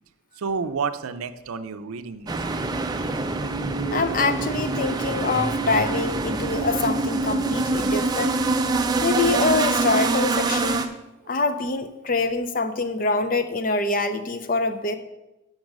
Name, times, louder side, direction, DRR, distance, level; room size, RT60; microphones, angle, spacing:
voice 1, 0.4-2.3 11.2-11.4, right 5 dB, 90° right, 11 dB, 0.5 m, -30 dB
sound 1, 2.3-10.9, right 3 dB, 20° right, 0.4 m, -25 dB
voice 2, 3.9-8.4 9.0-10.8 11.3-15.0, left 3 dB, 40° left, 10 dB, 0.5 m, -25 dB
5.3 x 5.2 x 6.0 m, 1.0 s
head